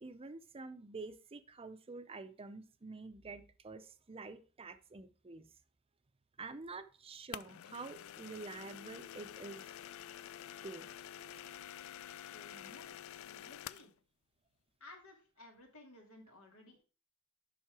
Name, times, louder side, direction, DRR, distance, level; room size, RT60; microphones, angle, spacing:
voice 1, 0.0-5.5 6.4-9.7 10.6-10.9, right 3 dB, 25° right, 11 dB, 0.6 m, -48 dB
sound 1, 7.3-13.9, left 10 dB, 70° left, 0.3 m, -49 dB
voice 2, 12.3-13.9 14.8-16.8, left 2 dB, 85° left, 1 dB, 2.6 m, -57 dB
7.4 x 5.6 x 4.8 m, 0.37 s
head